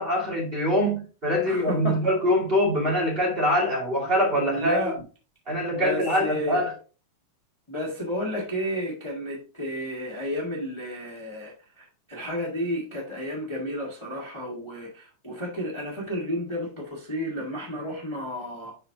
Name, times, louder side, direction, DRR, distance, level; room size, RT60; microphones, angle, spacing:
voice 1, 0.0-4.8 5.5-6.7, equal, 20° right, 2.1 m, -24 dB
voice 2, 1.4-2.0 4.5-5.0 5.7-6.6 7.7-18.7, equal, 20° left, 0.7 m, -32 dB
11.0 x 4.2 x 2.9 m
omnidirectional pair, 3.8 m